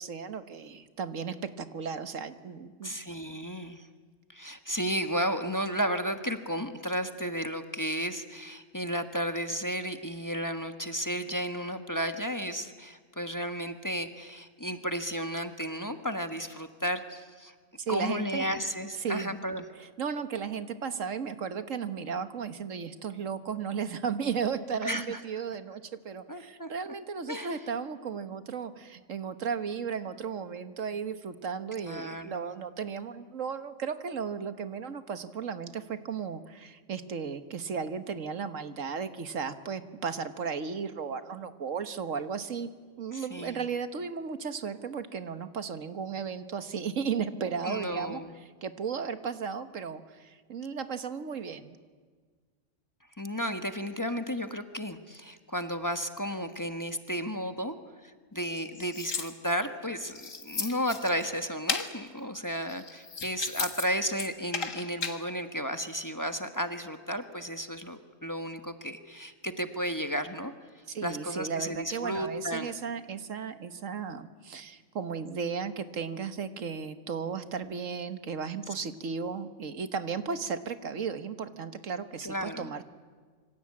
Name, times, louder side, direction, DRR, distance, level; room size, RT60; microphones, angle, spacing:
voice 1, 0.0-2.9 17.8-18.5 19.0-19.4 19.8-42.7 43.0-51.8 70.9-82.8, right 6 dB, 80° right, 10 dB, 1.7 m, -35 dB
voice 2, 2.8-3.9 4.3-17.5 17.9-19.6 24.8-25.2 26.3-26.7 27.3-27.6 31.8-32.4 43.1-43.6 47.6-48.3 53.2-57.8 58.0-70.5 71.0-72.7 82.2-82.7, equal, 15° left, 7 dB, 1.3 m, -33 dB
sound 1, 58.4-59.7 60.1-61.3 61.7-61.9 62.6-63.9 64.1-65.2, left 5 dB, 85° left, 2.1 m, -35 dB
26.5 x 24.5 x 8.7 m, 1.5 s
omnidirectional pair, 1.3 m